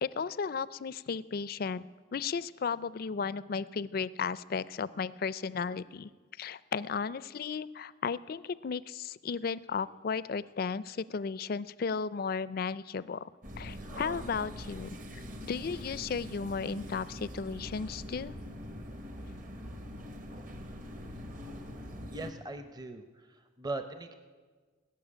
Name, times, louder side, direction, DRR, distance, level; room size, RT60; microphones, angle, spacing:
voice 1, 0.0-6.1 6.4-13.2 13.6-18.3, left 5 dB, 50° left, 17 dB, 0.4 m, -35 dB
sound 1, 13.4-22.3, equal, 45° right, 1.2 m, -43 dB
voice 2, 22.1-24.1, right 2 dB, 20° right, 8 dB, 0.7 m, -40 dB
19.5 x 6.8 x 9.9 m, 1.5 s
head